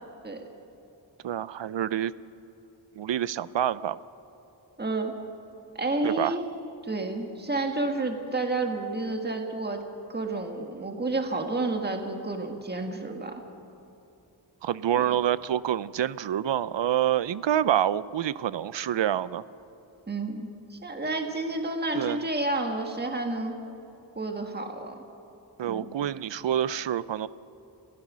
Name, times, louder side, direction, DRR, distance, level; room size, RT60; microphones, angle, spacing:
voice 1, 1.2-2.1 3.0-4.0 6.0-6.3 14.6-19.4 21.9-22.2 25.6-27.3, right 10 dB, 75° right, 17 dB, 0.6 m, -27 dB
voice 2, 4.8-5.1 5.7-6.5 6.8-9.8 10.1-13.3 14.9-15.0 20.1-23.6 24.1-24.9 25.6-25.9, right 2 dB, 20° right, 4 dB, 1.7 m, -30 dB
29.5 x 16.0 x 6.2 m, 2.9 s
wide cardioid pair, 110°, 44 cm